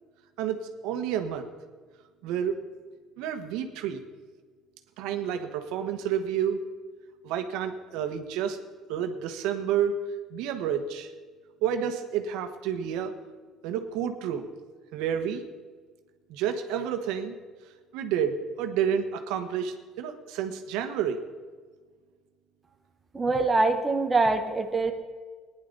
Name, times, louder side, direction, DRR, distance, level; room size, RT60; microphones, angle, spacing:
voice 1, 0.4-1.5 2.2-2.6 3.2-4.0 5.0-6.6 7.2-8.6 8.9-10.0 10.3-11.1 11.6-13.1 13.6-14.5 14.9-15.4 16.3-17.3 17.9-21.2, right 8 dB, 90° right, 7 dB, 1.2 m, -30 dB
voice 2, 23.1-24.9, right 3 dB, 15° right, 4 dB, 1.0 m, -24 dB
18.0 x 10.5 x 4.0 m, 1.5 s
cardioid pair, 160°, 0 cm